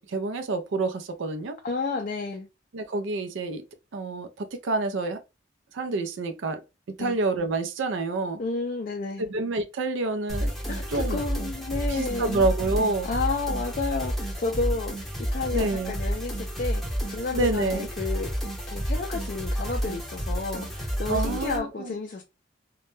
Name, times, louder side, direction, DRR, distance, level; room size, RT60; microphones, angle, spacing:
voice 1, 0.1-1.6 2.7-3.6 3.9-5.2 5.7-6.6 7.0-8.4 9.3-10.5 10.9-11.2 11.9-13.1 15.5-15.9 17.3-17.9 21.1-21.9, right 3 dB, 80° right, 0.4 m, -28 dB
voice 2, 1.6-2.5 7.0-7.2 8.4-9.3 10.7-12.5 13.0-18.3 18.7-22.2, left 3 dB, 45° left, 0.3 m, -31 dB
sound 1, 10.3-21.6, equal, ahead, 0.6 m, -30 dB
2.2 x 2.0 x 3.0 m
head